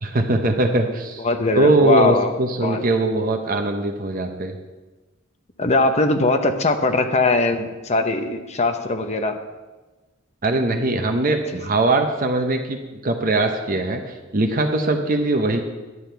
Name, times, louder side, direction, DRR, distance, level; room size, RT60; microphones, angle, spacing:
voice 1, 0.0-1.2 1.5-4.6 10.4-15.6, right 2 dB, 45° right, 5 dB, 0.8 m, -21 dB
voice 2, 1.2-2.3 2.6-2.8 5.6-9.4, left 2 dB, 35° left, 7 dB, 0.8 m, -20 dB
11.0 x 8.7 x 4.5 m, 1.2 s
head